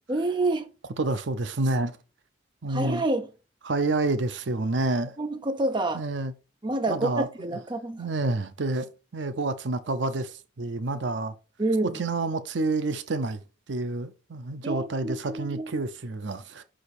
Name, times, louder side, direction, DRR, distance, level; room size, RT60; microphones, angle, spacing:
voice 1, 0.1-0.7 2.7-3.3 5.2-6.0 6.6-8.1 11.6-12.0 14.6-15.8, right 2 dB, 25° right, 0.7 m, -28 dB
voice 2, 1.0-2.0 2.6-3.0 3.6-5.1 5.9-6.3 6.9-7.3 8.0-11.3 11.9-13.4 13.7-16.6, right 2 dB, 65° right, 0.6 m, -28 dB
5.8 x 5.0 x 4.2 m
head